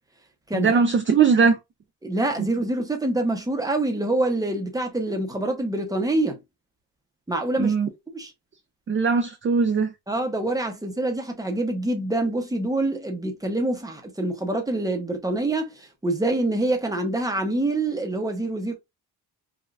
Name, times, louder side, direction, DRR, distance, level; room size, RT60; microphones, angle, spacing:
voice 1, 0.5-1.6 7.6-7.9 8.9-9.9, right 5 dB, 30° right, 0.4 m, -20 dB
voice 2, 2.0-6.4 7.3-7.7 8.1-8.3 10.1-18.7, right 2 dB, 10° right, 0.7 m, -26 dB
5.1 x 2.3 x 2.4 m
wide cardioid pair, 135°, 43 cm